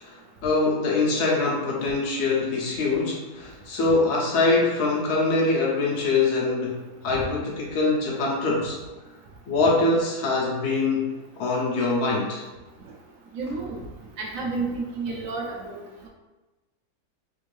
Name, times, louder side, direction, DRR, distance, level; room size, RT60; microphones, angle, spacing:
voice 1, 0.0-6.8 7.0-8.8 9.5-11.1 11.4-12.4, left 3 dB, 80° left, -2 dB, 1.3 m, -23 dB
voice 2, 13.3-13.8 14.2-15.8, right 3 dB, 70° right, -1 dB, 0.9 m, -30 dB
3.4 x 2.6 x 3.1 m, 1.2 s
omnidirectional pair, 1.7 m